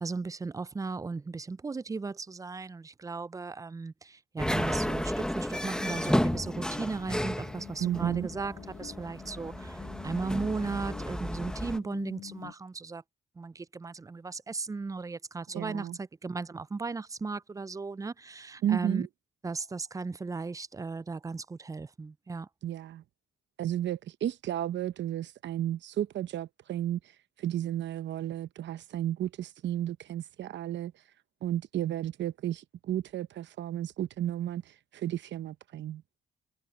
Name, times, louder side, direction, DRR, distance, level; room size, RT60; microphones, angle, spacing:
voice 1, 0.0-13.0 13.4-19.1 19.4-22.5, right 4 dB, 15° right, 0.4 m, -36 dB
sound 1, 4.4-11.8, left 1 dB, 5° left, 1.2 m, -33 dB
sound 2, 5.7-12.5, left 12 dB, 75° left, 1.6 m, -49 dB
voice 2, 7.8-8.3 15.5-16.0 18.6-19.1 22.6-23.0 23.6-27.0 27.4-30.9 31.4-36.0, right 11 dB, 65° right, 0.8 m, -33 dB
cardioid pair, 90°, 20 cm